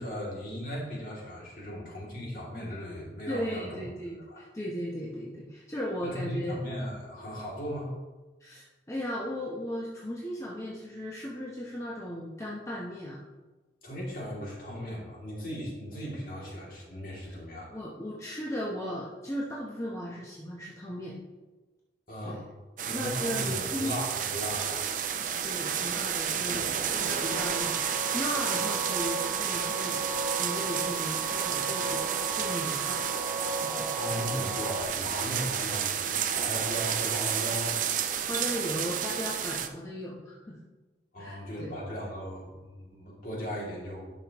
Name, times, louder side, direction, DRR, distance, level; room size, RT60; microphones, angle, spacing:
voice 1, 0.0-3.7 4.3-4.4 6.0-7.9 13.8-17.8 22.1-22.4 22.8-24.8 34.0-37.8 38.1-38.3 41.1-44.1, equal, 50° left, -5 dB, 2.7 m, -37 dB
voice 2, 3.3-6.6 8.4-13.2 17.7-21.2 22.2-22.4 22.9-24.0 25.4-30.0 30.4-33.0 33.6-33.9 34.3-34.4 38.3-40.6 41.2-41.7, equal, 15° left, -5 dB, 0.9 m, -36 dB
sound 1, 22.8-39.7, right 8 dB, 45° right, 0.5 m, -31 dB
sound 2, 26.7-34.8, right 3 dB, 10° right, 0.8 m, -36 dB
10.5 x 6.1 x 3.0 m, 1.2 s
head